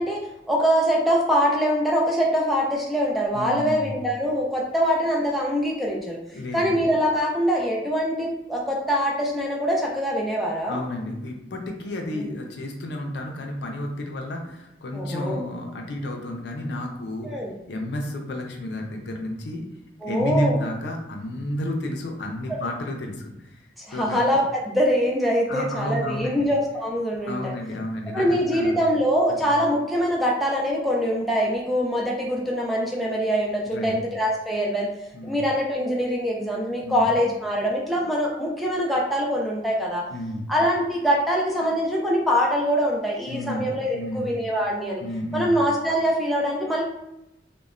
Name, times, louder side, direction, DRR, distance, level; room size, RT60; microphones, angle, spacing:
voice 1, 0.0-6.2 6.5-10.8 12.1-12.3 14.9-15.4 17.2-17.5 20.0-20.6 23.8-27.5 28.1-34.9 35.2-40.0 40.5-45.0 45.3-46.8, equal, ahead, -3 dB, 0.3 m, -23 dB
voice 2, 3.3-4.0 6.3-6.8 10.7-17.3 17.7-19.6 20.0-23.6 23.9-24.4 25.5-26.5 27.3-28.8 29.4-29.5 33.7-33.9 35.1-35.4 36.8-37.1 40.1-40.5 43.3-44.3 45.0-45.6, left 1 dB, 75° left, 2 dB, 0.5 m, -31 dB
3.0 x 2.1 x 2.4 m, 0.88 s
head